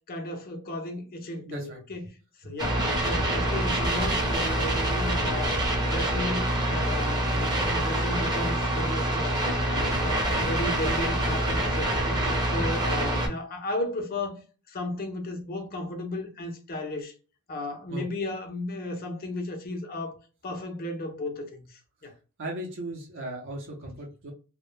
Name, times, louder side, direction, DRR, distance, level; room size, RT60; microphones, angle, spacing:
voice 1, 0.1-2.1 2.4-9.4 9.7-14.4 14.7-17.1 17.5-20.2 20.4-22.1, left 1 dB, 40° left, 0.5 m, -34 dB
voice 2, 1.5-1.8 17.9-18.1 22.4-24.3, right 1 dB, 60° right, 0.6 m, -36 dB
sound 1, 2.6-13.3, right 1 dB, 20° right, 0.6 m, -26 dB
2.1 x 2.0 x 2.9 m
head